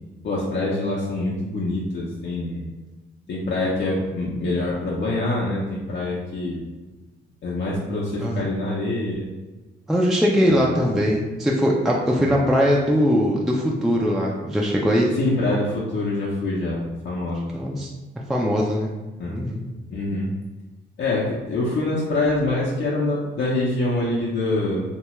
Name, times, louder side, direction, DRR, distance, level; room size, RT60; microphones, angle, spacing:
voice 1, 0.2-2.7 3.3-6.6 7.4-9.3 10.4-11.0 12.2-12.3 15.1-17.5 19.2-19.4 19.9-20.3 21.0-24.8, left 2 dB, 60° left, -5 dB, 0.6 m, -25 dB
voice 2, 9.9-15.1 17.5-17.9 18.2-18.9 19.3-19.6, equal, ahead, -2 dB, 0.3 m, -21 dB
2.7 x 2.2 x 3.0 m, 1.2 s
cardioid pair, 90°, 20 cm